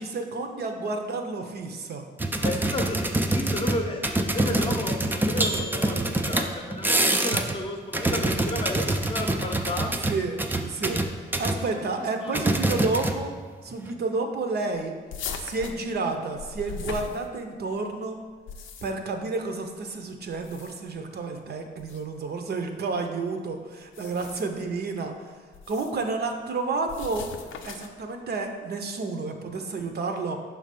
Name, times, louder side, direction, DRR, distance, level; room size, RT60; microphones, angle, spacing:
voice 1, 0.0-2.0 10.1-11.0 11.4-13.3 13.6-14.9 15.4-18.2 18.8-25.3 25.7-27.3 27.6-30.4, right 3 dB, 55° right, 5 dB, 0.6 m, -30 dB
sound 1, 2.2-7.6 7.8-11.6 12.3-13.4 13.7-13.9, right 1 dB, 10° right, 0.3 m, -25 dB
voice 2, 2.4-3.0 3.3-9.9 11.7-11.9 12.2-12.3 12.7-12.8, left 1 dB, 25° left, 2 dB, 0.7 m, -33 dB
Plucked string instrument, 4.5-6.5 7.1-9.9 10.2-10.3 10.7-10.8, right 3 dB, 85° right, 1.0 m, -44 dB
sound 2, 15.1-17.7 18.3-19.1 20.3-21.0 21.8-22.0 23.8-24.6 25.5-26.0 26.9-28.0, left 6 dB, 80° left, 0.5 m, -39 dB
5.7 x 3.3 x 5.1 m, 1.5 s
cardioid pair, 125°, 20 cm